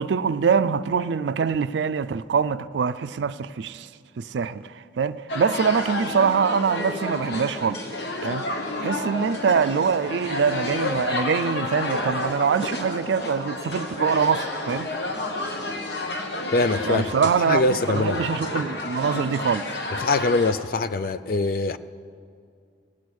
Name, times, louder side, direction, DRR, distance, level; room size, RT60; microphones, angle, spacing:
voice 1, 0.0-3.9 4.2-7.8 8.2-8.4 8.8-14.9 16.9-17.6 17.9-19.7, right 6 dB, 75° right, 0.4 m, -24 dB
sound 1, 5.3-20.5, left 2 dB, 70° left, 1.3 m, -30 dB
voice 2, 16.5-17.1 17.5-18.2 19.9-21.8, left 3 dB, 50° left, 0.4 m, -23 dB
17.0 x 6.2 x 8.5 m
head